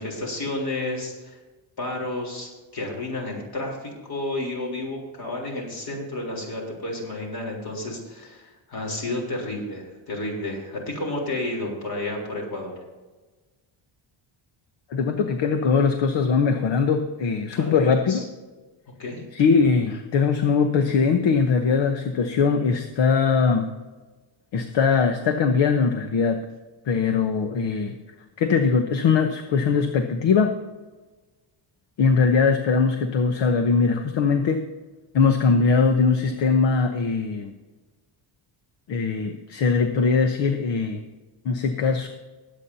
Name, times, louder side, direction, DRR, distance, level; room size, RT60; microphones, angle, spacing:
voice 1, 0.0-1.4 1.8-12.7 17.5-18.2 19.0-19.2, left 2 dB, 45° left, -1 dB, 3.8 m, -31 dB
voice 2, 14.9-18.2 19.3-23.7 24.5-26.5 26.9-28.0 28.4-30.6 32.0-34.7 35.1-37.5 38.9-41.0 41.4-42.1, left 5 dB, 60° left, 6 dB, 1.1 m, -21 dB
21.0 x 8.5 x 2.8 m, 1.2 s
cardioid pair, 165°, 50 cm